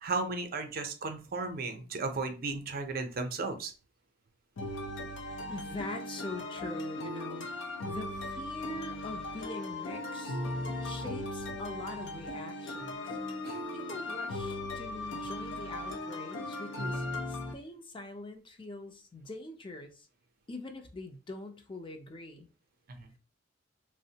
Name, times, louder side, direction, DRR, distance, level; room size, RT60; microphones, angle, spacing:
voice 1, 0.0-3.7 13.4-13.6 22.9-23.1, right 3 dB, 50° right, 0.5 m, -35 dB
sound 1, 4.6-17.5, left 1 dB, 85° left, 0.6 m, -38 dB
voice 2, 5.5-7.5 7.8-10.4 10.8-13.2 13.7-20.1 20.5-22.5, left 2 dB, 25° left, 0.5 m, -43 dB
3.4 x 2.0 x 2.7 m
head